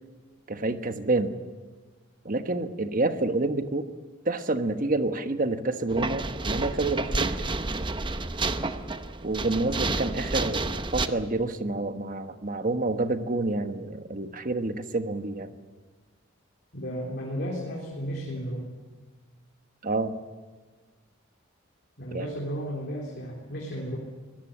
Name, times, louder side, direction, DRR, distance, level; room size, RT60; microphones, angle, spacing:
voice 1, 0.5-1.3 2.2-3.9 4.2-7.4 9.2-15.5 19.8-20.2 22.1-22.3, right 2 dB, 40° right, 9 dB, 1.3 m, -28 dB
sound 1, 5.9-11.1, right 3 dB, 25° right, 0.8 m, -30 dB
voice 2, 16.7-18.7 22.0-24.0, equal, 55° left, -2 dB, 3.8 m, -34 dB
24.0 x 18.5 x 8.6 m, 1.4 s
head